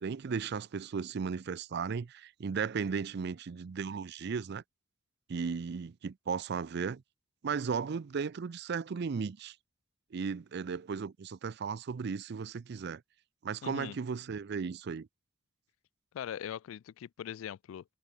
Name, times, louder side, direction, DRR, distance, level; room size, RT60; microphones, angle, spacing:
voice 1, 0.0-4.6 5.3-7.0 7.4-9.5 10.1-13.0 13.4-15.1, right 5 dB, 55° right, 0.4 m, -35 dB
voice 2, 13.6-14.0 16.1-17.8, left 9 dB, 80° left, 0.3 m, -41 dB
head